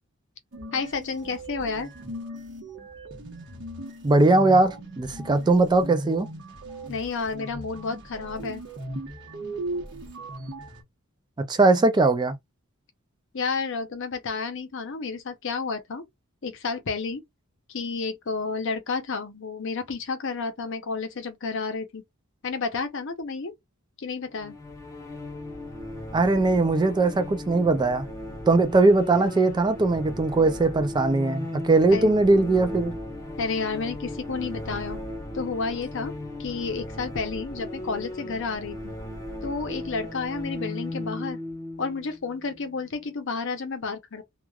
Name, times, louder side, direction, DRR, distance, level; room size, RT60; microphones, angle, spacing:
sound 1, 0.5-10.8, right 1 dB, 55° right, 1.0 m, -38 dB
voice 1, 0.7-1.9 6.9-8.6 13.3-16.0 16.4-17.2 17.7-22.0 22.4-23.5 24.0-24.6 31.9-32.1 33.4-35.0 35.3-36.1 36.4-38.9 39.4-41.4 41.8-44.2, left 4 dB, 60° left, 0.7 m, -31 dB
voice 2, 4.0-6.3 11.5-12.3 26.1-28.1 28.5-32.9, right 2 dB, 20° right, 0.3 m, -20 dB
sound 2, 24.4-43.0, left 1 dB, 15° left, 0.9 m, -37 dB
3.1 x 2.3 x 2.3 m
head